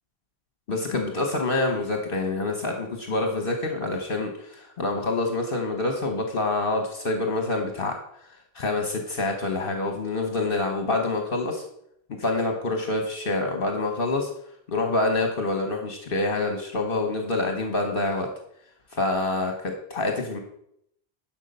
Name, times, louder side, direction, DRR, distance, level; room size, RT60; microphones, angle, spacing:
voice 1, 0.7-7.9 8.2-8.3 8.5-11.6 12.2-14.3 14.7-18.3 18.9-20.4, left 2 dB, 60° left, 4 dB, 1.3 m, -26 dB
11.0 x 6.1 x 5.4 m, 0.72 s
omnidirectional pair, 1.1 m